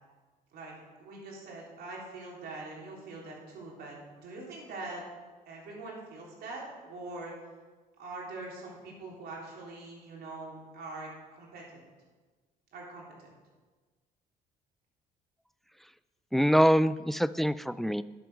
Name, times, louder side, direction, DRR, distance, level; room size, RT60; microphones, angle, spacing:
voice 1, 1.0-5.0 5.5-7.3 8.0-11.9 12.7-13.4, right 2 dB, 70° right, -3 dB, 4.0 m, -43 dB
voice 2, 16.3-18.0, equal, ahead, 16 dB, 0.3 m, -24 dB
11.0 x 8.0 x 6.2 m, 1.4 s
cardioid pair, 110°, 17 cm